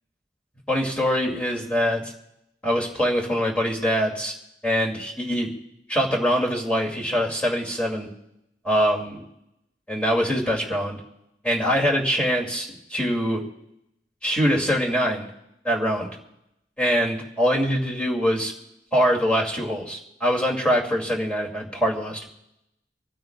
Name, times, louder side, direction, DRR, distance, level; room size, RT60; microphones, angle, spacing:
voice 1, 0.7-2.1 2.6-4.3 4.6-5.5 5.9-8.1 8.6-9.2 9.9-11.0 11.4-13.4 14.2-15.3 15.6-16.1 16.8-18.5 18.9-22.2, equal, 5° left, -1 dB, 2.6 m, -23 dB
25.5 x 15.5 x 2.4 m, 0.81 s
head